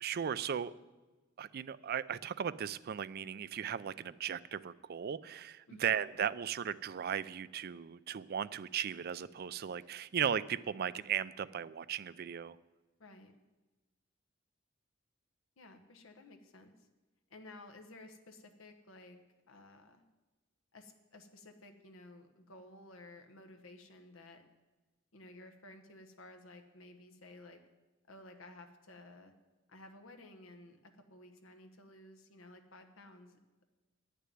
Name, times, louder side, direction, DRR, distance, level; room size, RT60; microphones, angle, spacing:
voice 1, 0.0-0.7 1.4-12.6, right 8 dB, 50° right, 17 dB, 0.4 m, -37 dB
voice 2, 13.0-13.4 15.6-16.7 17.3-19.2 19.5-20.0 20.7-24.4 25.1-27.6 28.1-29.3 29.7-33.6, left 2 dB, 90° left, 5 dB, 1.2 m, -55 dB
11.0 x 6.8 x 9.2 m, 1.2 s
head